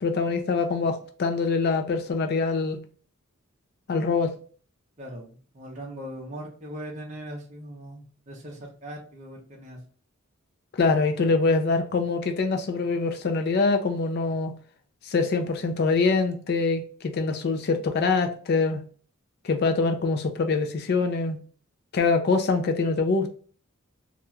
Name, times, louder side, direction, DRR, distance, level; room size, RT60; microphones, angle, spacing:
voice 1, 0.0-2.8 3.9-4.3 10.7-14.5 15.1-18.8 19.4-21.4 21.9-23.3, left 4 dB, 50° left, 0.4 m, -24 dB
voice 2, 5.0-9.8, equal, 35° right, 0.6 m, -40 dB
2.4 x 2.2 x 2.9 m
head